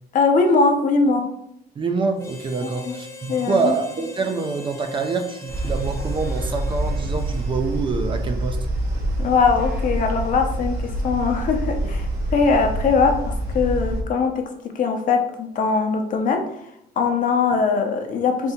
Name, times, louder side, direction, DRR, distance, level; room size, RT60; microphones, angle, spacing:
voice 1, 0.1-1.3 2.6-2.9 3.3-3.7 9.2-14.5 14.7-16.5 17.0-18.5, left 4 dB, 50° left, 4 dB, 0.8 m, -21 dB
voice 2, 1.8-8.6, right 4 dB, 30° right, 6 dB, 0.5 m, -26 dB
Harmonica, 2.2-7.8, left 2 dB, 15° left, 0.6 m, -41 dB
sound 1, 5.5-14.0, right 1 dB, 65° right, 1.3 m, -26 dB
3.5 x 2.7 x 4.3 m, 0.77 s
cardioid pair, 110°, 17 cm